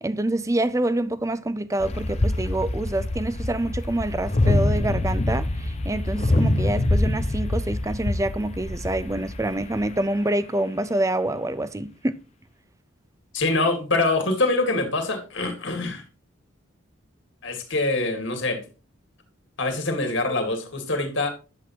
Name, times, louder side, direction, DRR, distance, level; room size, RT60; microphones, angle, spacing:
voice 1, 0.0-12.2, right 1 dB, 15° right, 0.4 m, -26 dB
sound 1, 1.8-10.0, left 1 dB, 30° left, 0.7 m, -25 dB
voice 2, 13.3-16.0 17.4-18.6 19.6-21.3, left 2 dB, 60° left, 2.2 m, -24 dB
10.5 x 7.9 x 2.7 m
head